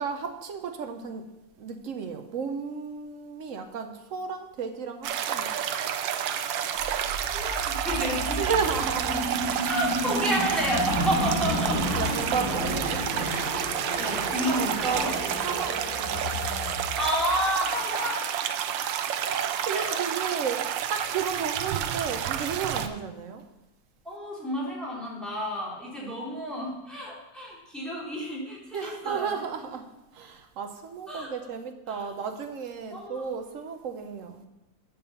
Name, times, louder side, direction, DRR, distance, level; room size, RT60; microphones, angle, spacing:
voice 1, 0.0-1.3 1.6-5.5 8.3-9.5 12.0-13.4 14.6-16.3 18.2-18.4 19.2-23.4 28.7-34.4, right 6 dB, 65° right, 6 dB, 0.8 m, -33 dB
sound 1, 5.0-22.9, right 9 dB, 85° right, 1.3 m, -30 dB
sound 2, 6.8-17.8, equal, 50° left, 3.3 m, -32 dB
voice 2, 7.3-8.5 9.7-12.1 13.9-15.2 17.0-18.3 19.7-20.0 20.2-20.4 24.0-29.4 31.1-31.4 31.9-32.0 32.9-33.2, equal, ahead, -5 dB, 2.3 m, -30 dB
7.1 x 5.5 x 6.8 m, 0.94 s
omnidirectional pair, 2.0 m